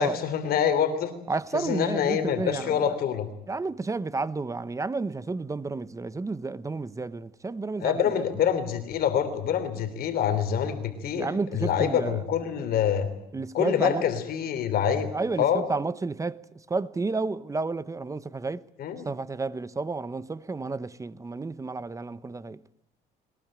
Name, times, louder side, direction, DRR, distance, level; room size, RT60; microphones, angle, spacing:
voice 1, 0.0-1.1 1.5-3.3 7.8-13.1 13.5-15.1 15.4-15.6 18.8-19.0, left 8 dB, 65° left, 3.3 m, -26 dB
voice 2, 1.3-2.9 3.5-8.2 11.1-12.2 12.6-12.7 13.3-14.0 15.1-16.4 16.7-18.6 19.0-22.6, right 3 dB, 20° right, 0.9 m, -31 dB
22.0 x 20.5 x 9.0 m
cardioid pair, 110°, 17 cm